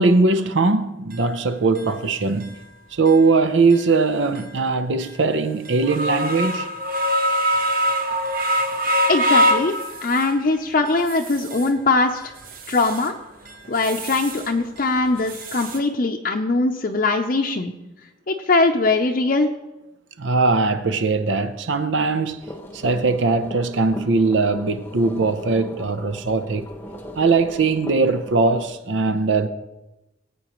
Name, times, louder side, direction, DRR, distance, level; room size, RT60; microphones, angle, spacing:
voice 1, 0.0-2.6 2.9-6.7 20.2-22.4 22.7-26.7 27.2-29.5, right 3 dB, 80° right, 0.6 m, -20 dB
sound 1, 1.1-1.2 1.8-1.9 2.4-2.5 3.1-3.2 3.7-3.9 4.4-4.5 5.0-5.1 5.7-10.4 10.9-11.7 12.2-13.1 13.5-14.5 14.8-15.8, equal, 50° right, 1.0 m, -24 dB
voice 2, 9.1-9.7 10.0-12.3 12.7-13.1 13.7-17.7 18.3-19.5, left 3 dB, 45° left, 0.6 m, -21 dB
sound 2, 22.4-28.6, equal, 10° left, 0.8 m, -38 dB
18.5 x 8.5 x 3.0 m
head